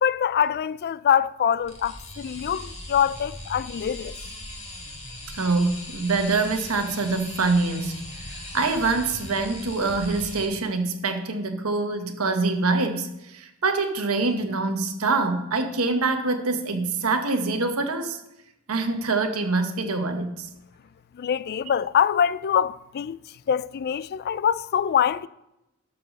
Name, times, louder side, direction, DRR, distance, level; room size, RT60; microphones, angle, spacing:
voice 1, 0.0-4.2 21.1-23.2 23.5-25.3, left 8 dB, 45° left, 0.3 m, -24 dB
sound 1, 1.6-10.5, left 1 dB, 30° left, 2.0 m, -39 dB
voice 2, 5.3-18.2 18.7-20.5, right 3 dB, 75° right, 1.2 m, -25 dB
12.0 x 4.8 x 6.5 m
head